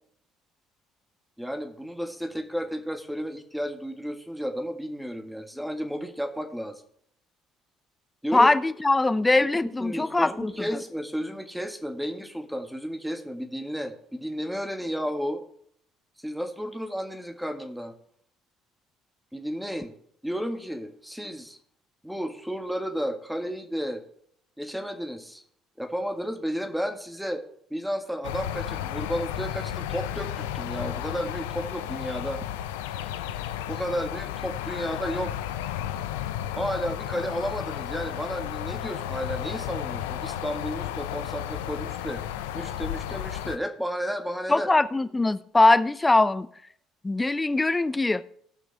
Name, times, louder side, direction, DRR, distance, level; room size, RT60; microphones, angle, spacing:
voice 1, 1.4-6.8 8.2-8.5 9.8-15.4 16.2-17.9 19.3-19.9 20.2-21.6 22.0-24.0 24.6-25.4 25.8-27.4 27.7-32.4 33.7-35.3 36.6-42.2 42.5-44.7, equal, ahead, 1.8 m, -32 dB
voice 2, 8.3-10.5 44.5-46.5 47.0-48.2, left 2 dB, 20° left, 0.7 m, -21 dB
sound 1, 28.2-43.6, left 11 dB, 80° left, 0.6 m, -33 dB
18.0 x 6.1 x 3.4 m
hypercardioid pair, 60°, 0 cm